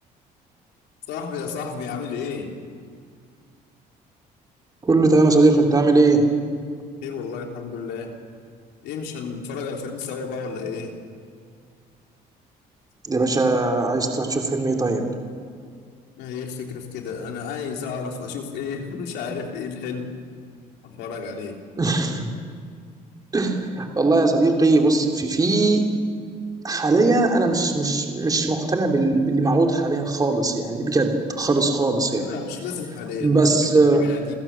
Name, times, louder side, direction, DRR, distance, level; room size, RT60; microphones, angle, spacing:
voice 1, 1.1-2.5 7.0-8.1 8.8-10.9 16.1-20.1 20.8-21.6 32.1-34.3, left 5 dB, 85° left, 2 dB, 3.3 m, -32 dB
voice 2, 4.8-6.3 13.0-15.0 21.8-22.3 23.3-25.9 26.6-32.3 33.2-34.1, right 2 dB, 20° right, 2 dB, 2.8 m, -19 dB
29.0 x 16.0 x 7.4 m, 2.1 s
cardioid pair, 110°, 17 cm